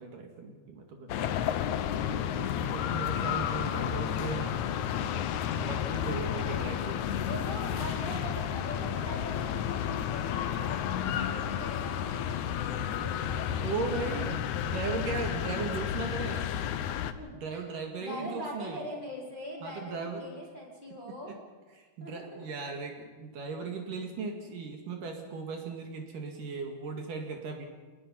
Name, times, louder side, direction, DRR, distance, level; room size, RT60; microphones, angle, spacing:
voice 1, 0.0-1.3 2.2-4.6 5.6-7.0 11.1-11.2 13.0-16.5 17.4-18.8 19.6-20.2 21.2-21.4 21.8-27.7, right 4 dB, 65° right, 2 dB, 3.5 m, -37 dB
sound 1, 1.1-17.1, left 10 dB, 70° left, 1.9 m, -32 dB
voice 2, 6.4-6.8 7.2-14.2 15.4-15.5 17.1-17.6 18.0-21.3 22.0-22.6, equal, 15° left, -3 dB, 4.0 m, -42 dB
27.0 x 19.5 x 5.7 m, 1.4 s
omnidirectional pair, 4.2 m